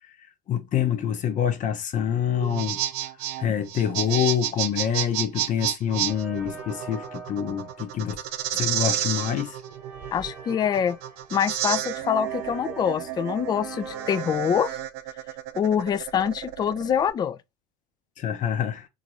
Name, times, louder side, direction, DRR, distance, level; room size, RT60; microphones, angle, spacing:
voice 1, 0.1-2.8 3.4-8.2 8.5-9.6 18.2-18.9, left 9 dB, 40° left, 0.8 m, -26 dB
sound 1, 2.3-17.1, right 13 dB, 60° right, 0.6 m, -31 dB
sound 2, 6.1-14.4, right 3 dB, 10° right, 1.1 m, -43 dB
voice 2, 10.1-11.0 11.3-14.8 15.6-17.4, left 8 dB, 20° left, 0.3 m, -25 dB
3.9 x 2.4 x 2.9 m
hypercardioid pair, 90°, 20 cm